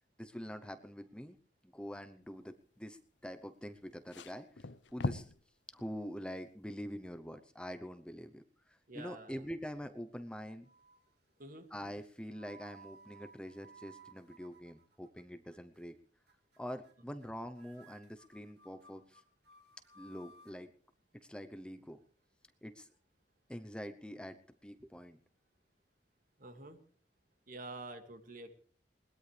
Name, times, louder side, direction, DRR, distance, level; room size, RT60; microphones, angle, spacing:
voice 1, 0.2-1.4 1.6-5.3 5.7-10.7 11.7-15.9 16.6-19.2 20.0-20.7 21.1-22.0 22.6-22.9 23.5-25.2, equal, 5° left, 9 dB, 0.8 m, -45 dB
sound 1, 3.8-5.4 5.8-6.0 7.1-7.2, left 2 dB, 80° left, 0.8 m, -39 dB
voice 2, 8.9-9.4 11.4-11.7 26.4-26.8 27.5-28.5, right 2 dB, 50° right, 7 dB, 2.3 m, -47 dB
sound 2, 10.0-10.3 10.6-11.1 11.9-15.2 15.5-15.9 16.3-16.6 16.8-16.9 17.2-17.3 17.6-20.6, right 4 dB, 65° right, 2.9 m, -60 dB
21.5 x 20.0 x 3.4 m, 0.43 s
head